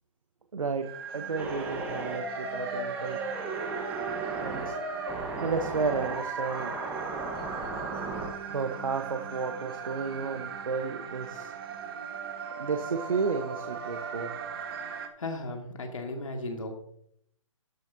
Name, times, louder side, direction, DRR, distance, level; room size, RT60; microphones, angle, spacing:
voice 1, 0.5-0.9 1.1-3.2 4.4-4.8 5.4-6.8 8.5-11.5 12.6-14.3, right 4 dB, 80° right, 6 dB, 1.0 m, -32 dB
sound 1, 0.8-15.1, right 7 dB, 45° right, 1.4 m, -39 dB
sound 2, 1.4-8.3, right 2 dB, 10° right, 1.2 m, -35 dB
voice 2, 15.2-16.7, left 2 dB, 75° left, 3 dB, 2.1 m, -35 dB
13.5 x 7.6 x 2.7 m, 0.70 s
figure-of-eight pair, 140°, 17 cm